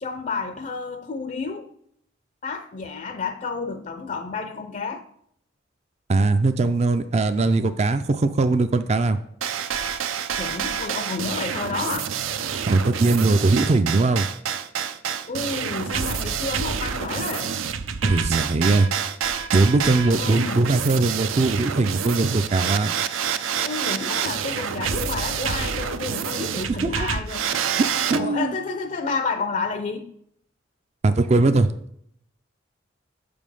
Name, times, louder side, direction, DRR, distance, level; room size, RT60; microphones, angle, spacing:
voice 1, 0.0-1.7 2.4-5.0 10.4-12.1 15.3-17.5 20.1-20.7 23.6-27.4 28.1-30.1, left 4 dB, 40° left, 0.4 m, -30 dB
voice 2, 6.1-9.2 12.7-14.3 18.0-18.9 19.5-22.9 26.8-27.1 27.8-28.5 31.0-31.7, right 3 dB, 35° right, 0.3 m, -20 dB
sound 1, 9.4-28.2, right 7 dB, 90° right, 0.5 m, -27 dB
7.5 x 5.2 x 5.4 m
head